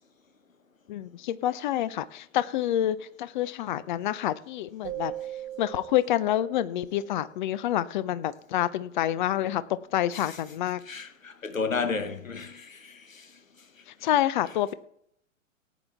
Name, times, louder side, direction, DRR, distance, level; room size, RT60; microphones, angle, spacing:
voice 1, 0.9-5.1 5.6-9.6 9.9-10.8 14.0-14.7, left 12 dB, 40° left, 0.8 m, -27 dB
sound 1, 4.8-7.5, right 13 dB, 20° right, 1.2 m, -40 dB
voice 2, 10.9-13.2, left 4 dB, 80° left, 1.5 m, -33 dB
17.5 x 9.2 x 3.6 m
figure-of-eight pair, 110°, 39 cm